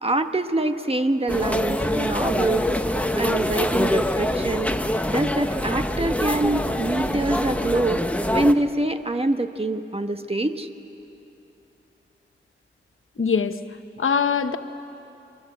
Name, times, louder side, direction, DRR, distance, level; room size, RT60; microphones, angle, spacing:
voice 1, 0.0-2.7 3.1-4.8 5.1-8.0 8.3-10.7, right 2 dB, 30° right, 7 dB, 1.3 m, -24 dB
sound 1, 1.3-8.5, left 1 dB, 5° left, 1.2 m, -25 dB
voice 2, 13.2-13.6 14.0-14.6, left 6 dB, 75° left, 9 dB, 1.0 m, -22 dB
27.5 x 24.0 x 8.0 m, 2.9 s
wide cardioid pair, 80°, 21 cm